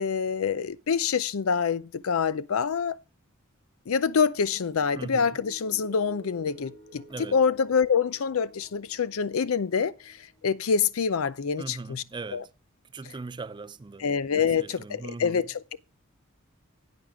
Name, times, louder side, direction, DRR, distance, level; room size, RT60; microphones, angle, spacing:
voice 1, 0.0-3.0 3.9-12.0 12.3-12.4 14.0-15.8, left 6 dB, 85° left, 0.5 m, -26 dB
sound 1, 4.4-11.0, equal, 20° left, 2.7 m, -52 dB
voice 2, 4.9-5.4 7.1-7.4 11.6-12.5 12.9-14.1 14.4-15.4, right 3 dB, 20° right, 0.4 m, -39 dB
9.9 x 8.9 x 3.5 m
head